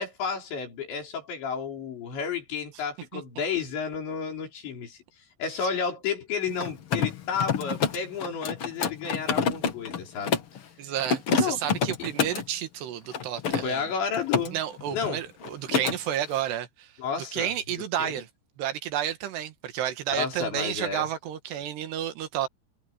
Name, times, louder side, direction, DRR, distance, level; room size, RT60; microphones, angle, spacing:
voice 1, 0.0-5.0 5.4-10.4 11.4-11.6 13.6-14.6 14.9-15.2 17.0-18.2 20.1-21.1, left 6 dB, 80° left, 7.6 m, -31 dB
Mechanisms, 6.5-10.6 11.0-12.5 13.1-14.5 14.8-15.1 15.4-16.0, left 6 dB, 60° left, 1.4 m, -28 dB
voice 2, 10.8-13.8 14.5-16.9 17.2-18.3 18.6-22.5, right 11 dB, 70° right, 3.6 m, -31 dB
omnidirectional pair, 5.1 m